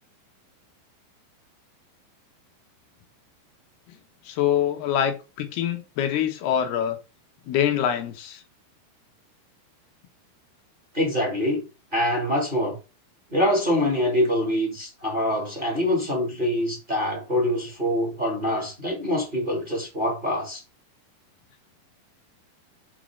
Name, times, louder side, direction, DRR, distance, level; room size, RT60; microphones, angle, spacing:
voice 1, 4.3-7.0 7.5-8.4, left 9 dB, 75° left, 3.3 m, -25 dB
voice 2, 10.9-11.6 11.9-12.7 13.3-20.6, left 1 dB, 15° right, 3.0 m, -25 dB
7.5 x 4.8 x 6.4 m
omnidirectional pair, 4.7 m